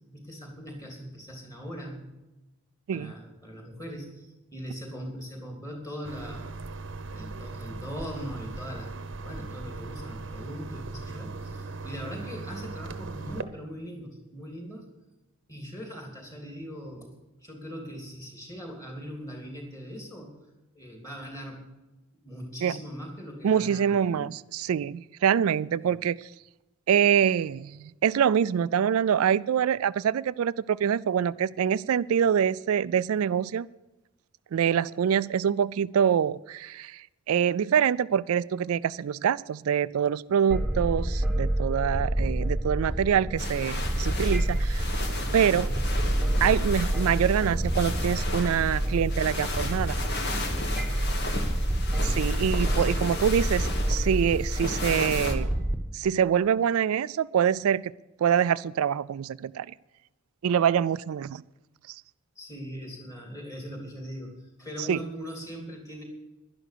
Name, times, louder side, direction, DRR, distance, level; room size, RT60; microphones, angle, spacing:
voice 1, 0.1-2.1 2.9-6.6 7.1-8.9 9.2-14.9 15.5-17.1 17.4-20.4 20.7-21.8 22.2-24.3 25.8-26.0 51.1-51.5 52.6-53.2 62.3-66.0, equal, 15° left, 1 dB, 3.0 m, -40 dB
sound 1, 6.0-13.4, right 3 dB, 55° right, 0.9 m, -38 dB
voice 2, 23.4-26.3 26.9-33.7 34.5-45.0 45.3-45.7 46.4-50.0 52.0-55.5 55.9-57.8 58.2-59.7 60.4-61.4 61.9-62.0 64.9-65.0, right 8 dB, 75° right, 16 dB, 0.3 m, -25 dB
sound 2, 40.5-55.8, right 1 dB, 5° right, 1.2 m, -28 dB
sound 3, 43.4-55.3, left 2 dB, 50° left, 1.7 m, -35 dB
11.5 x 11.0 x 6.8 m, 1.0 s
head